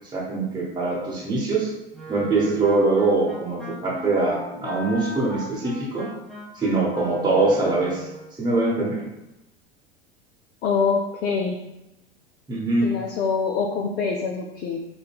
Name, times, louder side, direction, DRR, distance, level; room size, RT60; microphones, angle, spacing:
voice 1, 0.1-1.7 2.1-6.1 6.6-8.0 8.4-9.0 12.5-12.9, right 3 dB, 15° right, -5 dB, 1.1 m, -23 dB
Wind instrument woodwind instrument, 1.9-8.3, left 1 dB, 5° left, 0.8 m, -38 dB
voice 2, 10.6-11.6 12.8-14.9, left 5 dB, 35° left, 2 dB, 0.4 m, -25 dB
5.1 x 2.2 x 2.4 m, 0.95 s
figure-of-eight pair, 80°, 30 cm